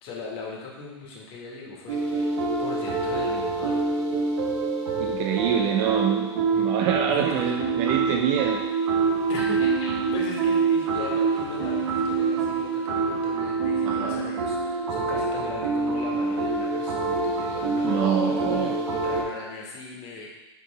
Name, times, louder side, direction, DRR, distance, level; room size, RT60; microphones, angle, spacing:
voice 1, 0.0-3.8 6.5-6.7 7.1-7.5 9.3-20.3, left 4 dB, 40° left, -2 dB, 1.7 m, -39 dB
sound 1, 1.9-19.2, right 4 dB, 80° right, 1.6 m, -26 dB
voice 2, 5.0-8.6 13.9-14.2 17.8-18.8, right 9 dB, 35° right, 2 dB, 0.5 m, -26 dB
5.8 x 5.2 x 3.4 m, 1.1 s
hypercardioid pair, 120°, 15 cm